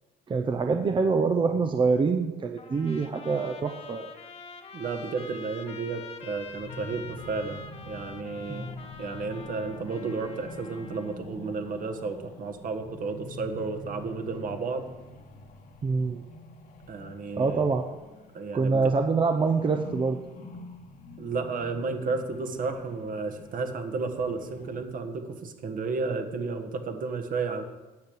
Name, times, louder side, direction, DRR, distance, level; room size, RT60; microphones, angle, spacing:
voice 1, 0.3-4.1 8.5-8.6 15.8-16.2 17.4-17.9 18.5-20.2, right 4 dB, 30° right, 5 dB, 0.7 m, -25 dB
Trumpet, 2.6-11.2, left 5 dB, 35° left, 1.3 m, -46 dB
voice 2, 4.7-8.7 9.0-14.8 16.9-17.7 18.3-18.9 21.2-27.6, right 4 dB, 55° right, 6 dB, 1.6 m, -32 dB
sound 1, 6.4-18.8 19.1-24.8, left 2 dB, 55° left, 1.6 m, -45 dB
9.6 x 6.5 x 8.7 m, 1.2 s
cardioid pair, 110°, 17 cm